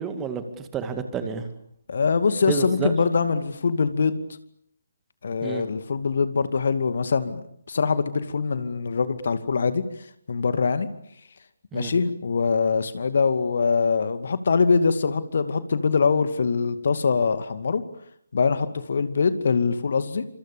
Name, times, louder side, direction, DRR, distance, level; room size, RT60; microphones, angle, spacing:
voice 1, 0.0-1.5 2.5-2.9 5.4-5.6 11.7-11.9, right 6 dB, 10° right, 8 dB, 2.3 m, -30 dB
voice 2, 1.9-4.2 5.2-7.4 7.7-10.9 11.7-17.8 18.3-20.3, left 5 dB, 45° left, 11 dB, 2.4 m, -23 dB
29.5 x 27.0 x 7.0 m, 0.70 s
figure-of-eight pair, 145°, 0 cm